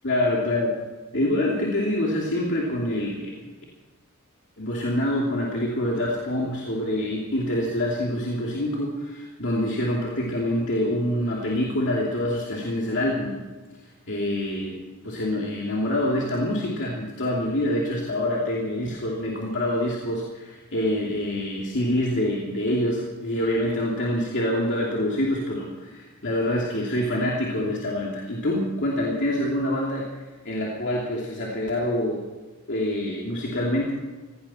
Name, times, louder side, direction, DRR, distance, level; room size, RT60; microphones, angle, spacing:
voice 1, 0.0-0.8 1.1-3.5 4.6-13.4 13.8-30.1 30.4-32.3 32.7-33.9, left 1 dB, 55° left, -3 dB, 2.7 m, -26 dB
17.5 x 16.0 x 4.4 m, 1.3 s
head